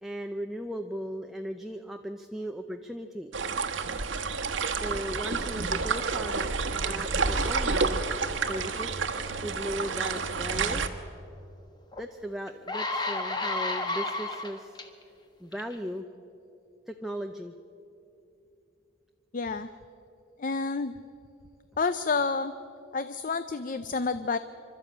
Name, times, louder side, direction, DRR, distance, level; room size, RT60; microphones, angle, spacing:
voice 1, 0.0-3.6 4.7-8.0 8.3-9.0 9.4-10.9 12.0-14.8 15.4-16.1 16.9-17.5, equal, ahead, 5 dB, 0.6 m, -37 dB
sound 1, 3.3-10.9, right 4 dB, 80° right, 1.2 m, -29 dB
sound 2, 11.9-12.0 12.5-14.8 15.5-15.7, left 2 dB, 20° left, 1.4 m, -31 dB
voice 2, 19.3-19.7 20.4-20.9 21.8-22.5 22.9-24.4, left 4 dB, 45° left, 11 dB, 0.5 m, -29 dB
25.5 x 13.0 x 8.6 m, 2.8 s
head